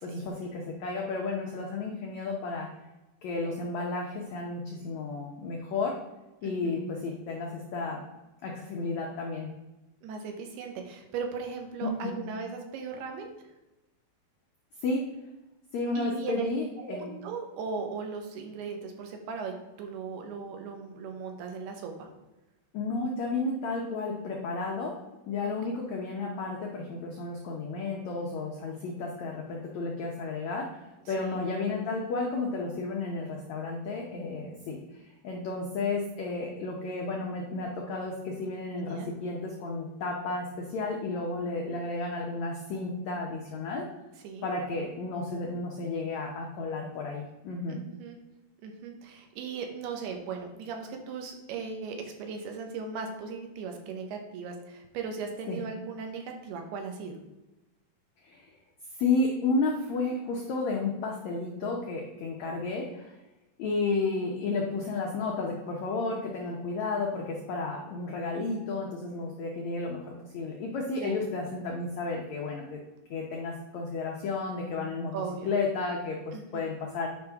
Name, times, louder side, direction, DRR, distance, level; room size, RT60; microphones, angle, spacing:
voice 1, 0.0-2.7 3.2-6.0 6.4-8.0 8.4-9.5 11.8-12.2 14.8-15.0 15.7-17.1 22.7-25.0 25.3-30.7 31.1-34.8 35.0-43.8 44.4-47.8 55.5-55.6 58.2-58.5 59.0-63.2 63.6-72.8 73.1-75.1 75.5-77.1, left 3 dB, 85° left, 0 dB, 1.6 m, -32 dB
voice 2, 6.4-6.7 10.0-13.3 16.0-16.4 16.9-22.1 25.4-25.5 31.2-31.4 38.8-39.1 44.2-44.5 47.7-48.2 48.6-57.2 66.5-66.6 71.0-71.2 75.1-75.5 76.3-76.6, right 5 dB, 90° right, 3 dB, 3.1 m, -38 dB
9.4 x 5.3 x 3.5 m, 1.0 s
omnidirectional pair, 4.5 m